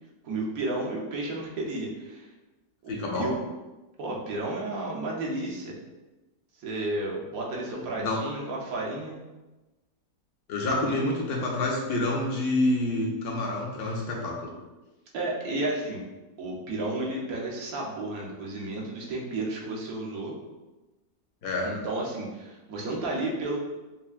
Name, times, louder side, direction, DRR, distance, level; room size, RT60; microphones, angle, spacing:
voice 1, 0.2-2.3 2.9-3.4 4.0-5.8 6.6-9.2 10.9-11.0 15.1-16.0 16.4-20.3 21.6-23.6, right 2 dB, 65° right, -2 dB, 1.2 m, -32 dB
voice 2, 2.9-3.3 7.7-8.2 10.5-14.5 21.4-21.7, left 2 dB, 70° left, -1 dB, 1.2 m, -28 dB
5.5 x 2.2 x 2.4 m, 1.1 s
omnidirectional pair, 1.8 m